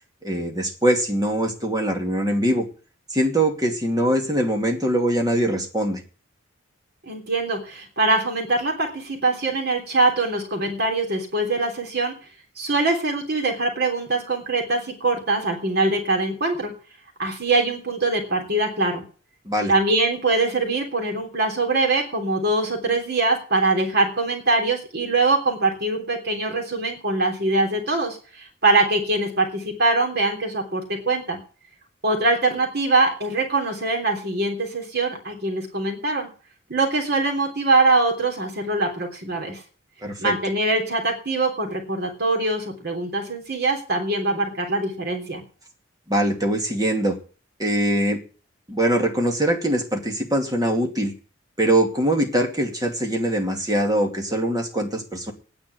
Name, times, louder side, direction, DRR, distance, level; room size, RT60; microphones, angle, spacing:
voice 1, 0.2-2.7 3.1-6.0 19.5-19.7 40.0-40.3 46.1-47.2 47.6-48.2 48.7-51.1 51.6-55.3, right 1 dB, 20° right, 3 dB, 2.5 m, -22 dB
voice 2, 7.1-12.1 12.6-16.7 17.2-19.0 19.7-31.4 32.0-36.3 36.7-39.6 40.2-45.4, right 2 dB, 55° right, 2 dB, 3.4 m, -23 dB
9.9 x 8.7 x 9.4 m, 0.39 s
head